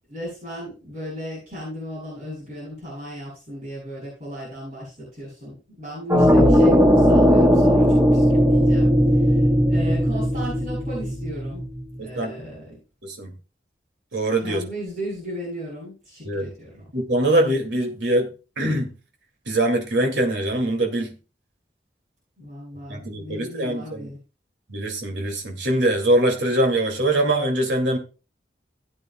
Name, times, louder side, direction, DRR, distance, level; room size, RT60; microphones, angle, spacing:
voice 1, 0.1-11.6 12.0-12.8 14.4-16.9 22.4-24.2, equal, 40° right, 7.3 m, -35 dB
sound 1, 6.1-11.9, equal, 10° right, 1.1 m, -17 dB
voice 2, 12.0-12.3 13.0-13.3 14.1-14.6 16.2-16.5 16.9-18.3 18.6-18.9 19.5-21.2 22.9-24.1 24.7-28.0, right 1 dB, 85° right, 2.3 m, -23 dB
17.0 x 8.9 x 2.3 m
head